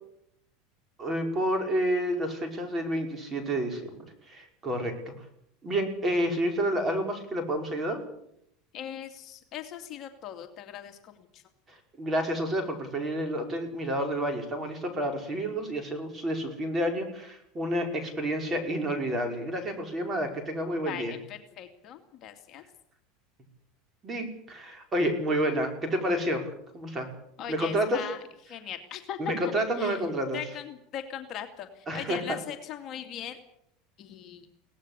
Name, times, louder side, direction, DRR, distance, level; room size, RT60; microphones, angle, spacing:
voice 1, 1.0-3.9 4.3-5.1 5.6-8.0 11.7-21.2 24.0-27.1 27.5-28.0 29.2-30.4 31.9-32.4, equal, 20° right, 5 dB, 5.4 m, -29 dB
voice 2, 8.7-11.4 20.9-22.6 27.4-28.2 28.4-30.1 30.3-33.4 34.0-34.5, left 9 dB, 40° left, 5 dB, 2.5 m, -39 dB
23.0 x 18.0 x 8.3 m, 0.75 s
supercardioid pair, 140°, 0 cm